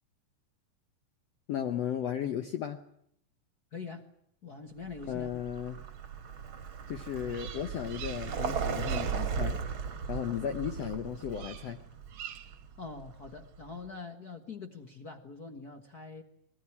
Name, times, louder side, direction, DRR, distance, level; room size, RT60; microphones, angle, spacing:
voice 1, 1.5-2.8 5.1-5.8 6.9-9.6 10.1-11.8, left 9 dB, 65° left, 7 dB, 1.8 m, -35 dB
voice 2, 3.7-4.1 4.4-5.3 12.8-16.2, left 4 dB, 45° left, 5 dB, 1.2 m, -44 dB
Vehicle, 4.9-13.7, right 6 dB, 45° right, 2.0 m, -37 dB
Bird vocalization bird call bird song, 7.3-8.5 8.7-9.3 11.3-11.8 12.1-12.6, right 10 dB, 65° right, 2.2 m, -46 dB
22.0 x 19.0 x 9.9 m, 0.71 s
omnidirectional pair, 3.9 m